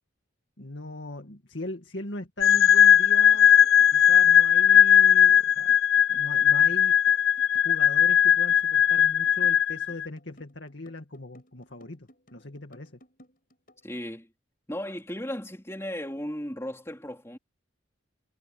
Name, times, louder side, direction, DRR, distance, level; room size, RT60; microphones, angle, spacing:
voice 1, 0.6-5.8 6.1-7.0 7.6-13.0, left 1 dB, 60° left, 2.2 m, -40 dB
sound 1, 2.4-10.1, left 9 dB, 85° left, 0.5 m, -19 dB
sound 2, 3.3-13.8, equal, 45° left, 7.8 m, -57 dB
voice 2, 13.8-14.3 14.7-17.4, equal, 15° left, 3.8 m, -36 dB
head